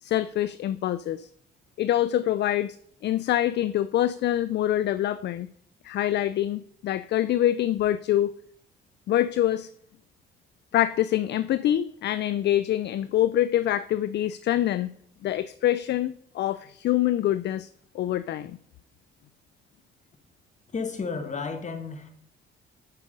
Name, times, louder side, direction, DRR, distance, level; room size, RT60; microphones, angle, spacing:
voice 1, 0.0-1.3 1.8-2.8 3.0-5.5 5.8-8.3 9.1-9.7 10.7-14.9 15.2-17.7 17.9-18.6, left 12 dB, 60° left, 15 dB, 0.4 m, -25 dB
voice 2, 20.7-22.1, left 5 dB, 35° left, 7 dB, 1.5 m, -32 dB
8.1 x 5.4 x 5.3 m, 0.65 s
cardioid pair, 90°, 20 cm